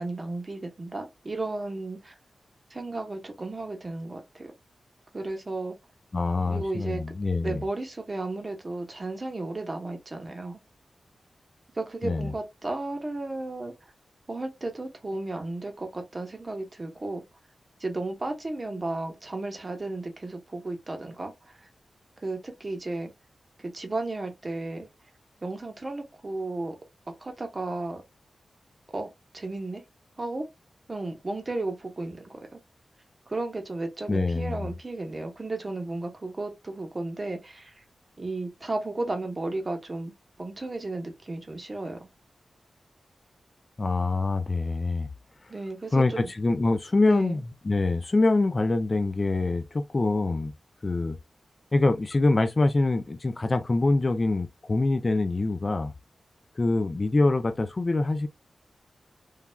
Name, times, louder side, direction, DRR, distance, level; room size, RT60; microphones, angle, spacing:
voice 1, 0.0-2.1 2.7-4.5 5.1-5.8 6.5-7.0 7.4-10.6 11.8-13.7 14.3-17.2 17.8-21.6 22.2-23.1 23.6-24.9 25.4-26.8 27.1-28.0 28.9-29.1 29.3-29.8 30.2-30.5 30.9-32.6 33.3-37.8 38.2-42.1 45.5-46.3 47.1-47.4, right 2 dB, 35° right, 0.8 m, -34 dB
voice 2, 6.1-7.6 12.0-12.3 34.1-34.7 43.8-45.1 45.9-50.5 50.8-51.2 51.7-55.9 56.6-58.3, left 2 dB, 35° left, 0.3 m, -25 dB
3.2 x 2.3 x 2.2 m
wide cardioid pair, 95°, 0 cm